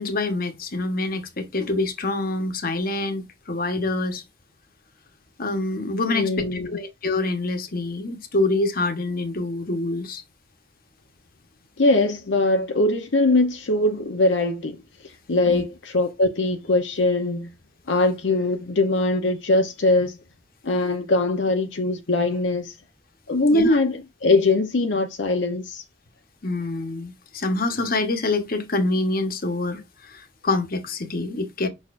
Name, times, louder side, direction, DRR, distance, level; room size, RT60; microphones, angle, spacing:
voice 1, 0.0-4.2 5.4-10.2 15.5-15.6 23.5-23.8 26.4-31.7, left 2 dB, 50° left, 1.2 m, -26 dB
voice 2, 6.1-6.7 11.8-14.8 15.3-17.5 17.9-20.2 20.6-22.7 23.3-25.8, left 2 dB, 80° left, 0.8 m, -21 dB
6.5 x 5.9 x 2.5 m
head